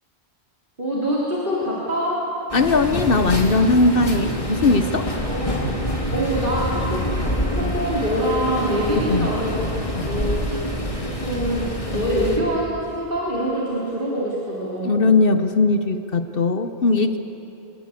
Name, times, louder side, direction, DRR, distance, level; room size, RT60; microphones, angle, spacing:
voice 1, 0.8-2.3 5.2-5.6 6.1-9.6 10.1-10.6 11.0-15.1 16.9-17.0, equal, 50° right, -6 dB, 3.5 m, -25 dB
voice 2, 2.5-5.1 9.1-9.3 14.8-17.2, left 3 dB, 60° left, 9 dB, 1.1 m, -19 dB
sound 1, 2.5-12.4, equal, 30° left, 2.9 m, -26 dB
25.5 x 19.0 x 8.4 m, 3.0 s
omnidirectional pair, 1.1 m